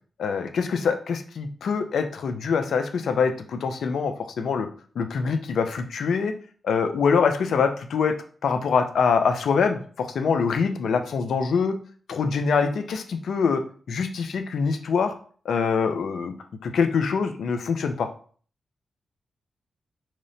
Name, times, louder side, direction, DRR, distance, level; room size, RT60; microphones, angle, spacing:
voice 1, 0.2-4.7 5.0-6.3 6.6-8.1 8.4-11.8 12.1-13.6 13.9-15.1 15.4-16.3 16.6-18.1, left 5 dB, 80° left, 7 dB, 0.3 m, -24 dB
2.8 x 2.0 x 2.6 m, 0.44 s
cardioid pair, 60°, 0 cm